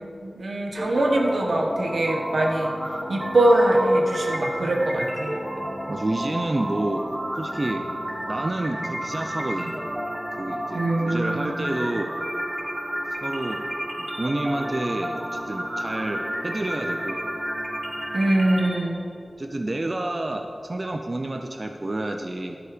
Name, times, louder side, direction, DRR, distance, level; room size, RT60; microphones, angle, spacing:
voice 1, 0.0-2.7 3.1-5.4 10.7-11.5 18.1-19.0, right 1 dB, 85° right, 1 dB, 1.3 m, -22 dB
sound 1, 0.8-18.8, equal, 25° right, 3.0 m, -31 dB
voice 2, 5.9-7.0 7.3-7.8 8.3-9.8 10.3-12.1 13.2-13.6 14.0-17.2 19.4-22.6, right 2 dB, 45° right, 4 dB, 0.6 m, -29 dB
11.5 x 8.6 x 5.1 m, 2.7 s
wide cardioid pair, 60°, 0 cm